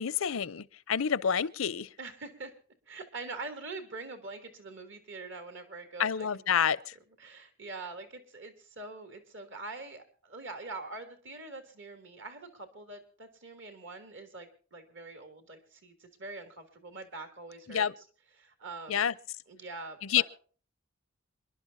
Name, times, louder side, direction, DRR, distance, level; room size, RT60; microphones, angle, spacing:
voice 1, 0.0-1.9 6.0-6.9 17.7-17.9 18.9-19.1 20.1-20.2, left 8 dB, 85° left, 0.6 m, -28 dB
voice 2, 2.0-2.5 2.9-6.4 7.2-18.0 18.4-19.1 19.5-20.2, right 3 dB, 65° right, 2.8 m, -44 dB
27.5 x 11.5 x 2.7 m
head